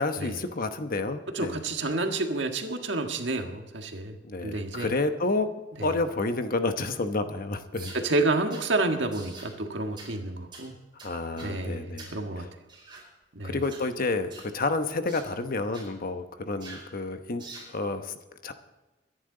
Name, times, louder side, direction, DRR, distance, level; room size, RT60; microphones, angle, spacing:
voice 1, 0.0-1.6 4.2-5.5 5.8-7.9 11.0-12.5 13.4-17.4 17.7-18.1 18.4-18.5, left 3 dB, 50° left, 8 dB, 1.0 m, -30 dB
voice 2, 1.3-4.2 4.4-4.9 5.8-5.9 7.9-10.7 11.4-12.5 13.4-13.6, right 2 dB, 70° right, 4 dB, 1.6 m, -29 dB
sound 1, 7.7-8.0 8.5-8.7 9.1-9.5 10.0-10.1 10.5-10.7 11.0-11.5 12.0-12.2 12.7-13.1 13.6-13.9 14.3-14.5 15.1-15.3 15.7-15.9 16.6-16.9 17.4-17.7, right 3 dB, 25° right, 4.8 m, -45 dB
23.0 x 10.5 x 3.9 m, 1.1 s
head